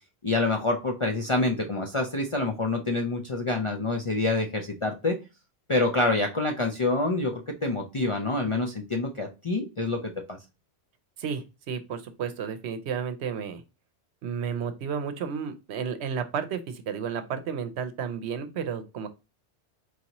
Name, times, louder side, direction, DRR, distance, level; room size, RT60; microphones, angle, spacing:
voice 1, 0.2-5.2 5.7-10.4, left 2 dB, 40° left, 2 dB, 0.4 m, -27 dB
voice 2, 11.2-13.6 14.2-19.1, right 7 dB, 75° right, 9 dB, 0.9 m, -32 dB
4.6 x 2.6 x 2.9 m, 0.27 s
omnidirectional pair, 1.2 m